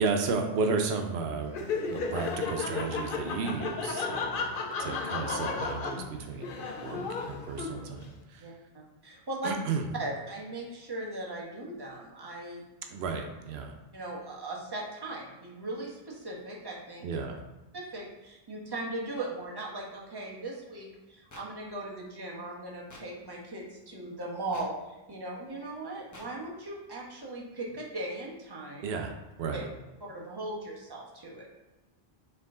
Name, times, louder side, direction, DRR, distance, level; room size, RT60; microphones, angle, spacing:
voice 1, 0.0-1.5 1.9-4.5 4.8-8.5 9.4-9.9 12.9-13.7 17.0-17.4 28.8-29.1 29.4-29.7, right 4 dB, 90° right, 4 dB, 0.9 m, -33 dB
Laughter, 1.5-8.0, left 4 dB, 60° left, 0.7 m, -34 dB
voice 2, 8.4-9.5 10.0-12.6 13.9-17.1 17.7-28.9 29.5-29.6 30.1-31.5, right 2 dB, 25° right, -3 dB, 1.0 m, -38 dB
sound 1, 21.3-21.4 22.9-23.0 24.5-24.7 26.1-26.3, left 1 dB, 25° left, 0.5 m, -48 dB
4.6 x 3.0 x 3.6 m, 1.1 s
omnidirectional pair, 1.0 m